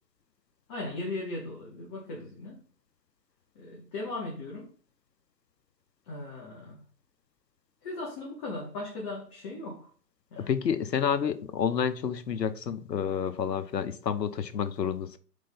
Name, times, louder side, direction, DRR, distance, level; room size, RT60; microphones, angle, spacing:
voice 1, 0.7-2.6 3.5-4.7 6.0-6.8 7.8-9.9 10.3-10.5, left 2 dB, 20° left, 1.0 m, -38 dB
voice 2, 10.4-15.2, left 7 dB, 75° left, 0.8 m, -29 dB
5.1 x 3.8 x 5.4 m
figure-of-eight pair, 140°, 50 cm